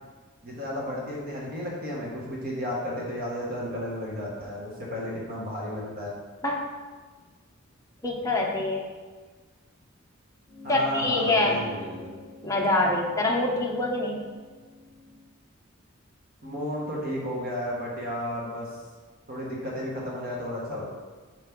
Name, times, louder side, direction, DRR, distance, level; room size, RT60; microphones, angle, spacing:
voice 1, 0.4-6.1 10.6-12.1 16.4-18.7 19.3-20.9, equal, 50° right, -4 dB, 1.3 m, -33 dB
voice 2, 8.0-8.8 10.7-11.6 12.4-14.3, left 2 dB, 15° left, -2 dB, 0.8 m, -25 dB
sound 1, 10.5-15.3, left 3 dB, 15° right, 1.3 m, -45 dB
5.7 x 4.7 x 3.6 m, 1.4 s
head